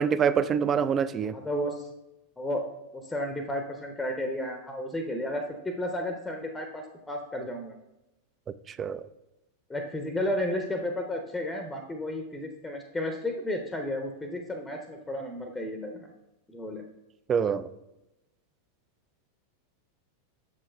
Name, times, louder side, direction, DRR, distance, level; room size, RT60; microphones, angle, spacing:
voice 1, 0.0-1.4 8.7-9.1 17.3-17.7, right 7 dB, 25° right, 15 dB, 0.3 m, -25 dB
voice 2, 1.3-1.9 2.4-2.7 2.9-7.7 9.7-16.1 16.5-16.8, left 1 dB, 10° left, 4 dB, 0.7 m, -33 dB
6.9 x 5.3 x 3.3 m, 0.93 s
figure-of-eight pair, 90°, 0 cm